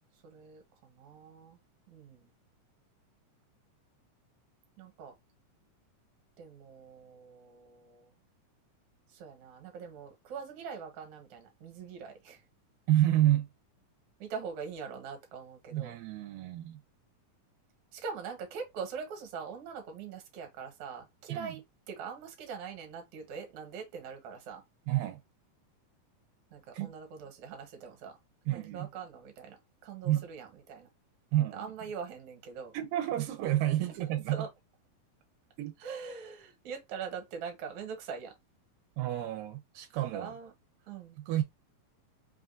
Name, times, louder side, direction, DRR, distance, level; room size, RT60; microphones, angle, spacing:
voice 1, 0.2-1.6 1.9-2.3 4.8-5.1 6.4-8.1 9.1-12.4 14.2-16.0 17.9-21.6 21.9-24.6 26.5-28.1 28.5-30.9 31.5-32.7 33.9-34.0 34.3-34.5 35.8-38.3 40.1-40.5 40.9-41.2, right 6 dB, 70° right, 2.3 m, -43 dB
voice 2, 12.9-13.5 15.7-16.8 21.3-21.5 24.9-25.2 26.7-26.9 28.5-28.9 30.1-30.2 31.3-31.7 32.7-34.5 35.6-35.7 39.0-40.3 41.2-41.4, right 13 dB, 85° right, 2.3 m, -29 dB
5.2 x 2.4 x 2.5 m
omnidirectional pair, 3.8 m